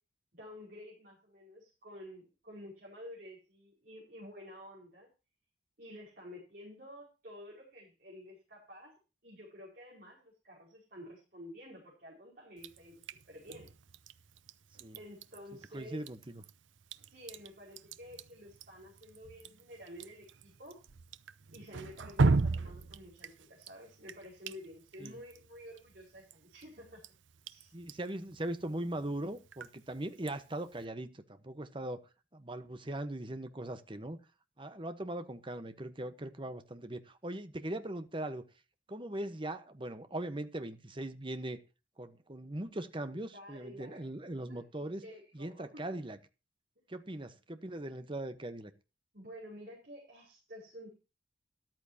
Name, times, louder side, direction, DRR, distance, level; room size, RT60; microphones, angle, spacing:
voice 1, 0.3-5.1 5.8-9.0 9.2-13.0 13.3-13.7 14.9-16.0 17.0-20.8 21.5-27.0 27.5-27.7 43.1-44.0 44.5-45.8 49.1-51.0, left 1 dB, 50° right, 5.1 m, -51 dB
Drip, 12.6-30.8, right 3 dB, 80° right, 0.7 m, -39 dB
voice 2, 15.7-16.4 25.0-25.2 27.7-32.0 32.3-34.2 34.6-38.4 38.9-41.6 42.0-45.0 45.3-46.2 46.9-48.7, right 1 dB, 25° right, 1.1 m, -40 dB
13.5 x 12.0 x 2.9 m
head